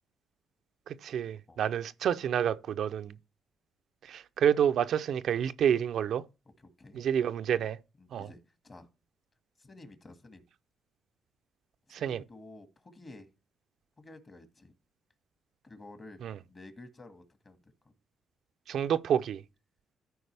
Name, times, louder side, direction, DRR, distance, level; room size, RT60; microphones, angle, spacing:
voice 1, 0.9-3.1 4.0-6.2 6.9-7.8 8.1-8.3 11.9-12.2 16.2-16.4 18.7-19.4, right 9 dB, 70° right, 0.5 m, -29 dB
voice 2, 6.6-7.0 8.0-8.4 8.6-8.9 9.6-10.4 12.0-13.3 14.0-14.7 15.6-16.2 16.5-17.7, left 2 dB, 30° left, 1.9 m, -51 dB
13.5 x 4.7 x 3.4 m
cardioid pair, 90°, 0 cm